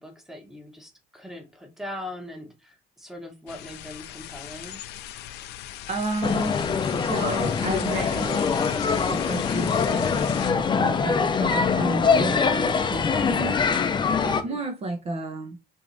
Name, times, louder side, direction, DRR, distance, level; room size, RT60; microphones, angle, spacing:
voice 1, 0.0-4.8 14.4-14.6, left 1 dB, ahead, 1.2 m, -40 dB
sound 1, 3.5-10.5, left 12 dB, 80° left, 0.5 m, -38 dB
voice 2, 5.9-6.6 7.0-8.4 9.1-13.9 14.2-15.6, right 2 dB, 35° right, 0.8 m, -32 dB
sound 2, 6.2-14.4, left 5 dB, 25° left, 0.6 m, -23 dB
4.6 x 3.1 x 2.6 m
cardioid pair, 110°, 17 cm